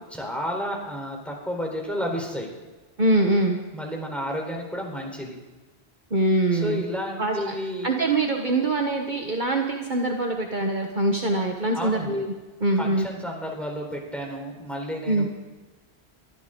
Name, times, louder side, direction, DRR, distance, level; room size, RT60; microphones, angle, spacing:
voice 1, 0.1-2.5 3.7-5.4 6.5-7.9 11.7-12.2 12.8-15.3, equal, ahead, 0 dB, 4.0 m, -31 dB
voice 2, 3.0-3.6 6.1-6.8 7.2-7.6 7.8-12.3 12.6-13.1 15.1-15.3, right 2 dB, 50° right, 2 dB, 1.4 m, -23 dB
23.0 x 14.0 x 3.9 m, 1.2 s
omnidirectional pair, 1.1 m